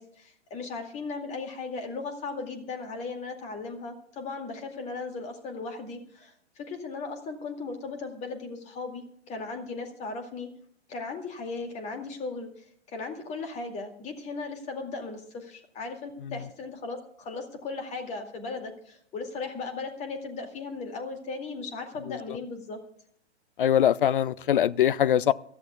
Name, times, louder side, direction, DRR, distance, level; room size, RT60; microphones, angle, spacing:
voice 1, 0.0-10.5 10.9-22.8, left 4 dB, 20° left, 2.3 m, -37 dB
voice 2, 22.1-22.4 23.6-25.3, left 10 dB, 50° left, 0.6 m, -23 dB
23.0 x 14.0 x 2.3 m
figure-of-eight pair, 115°, 35 cm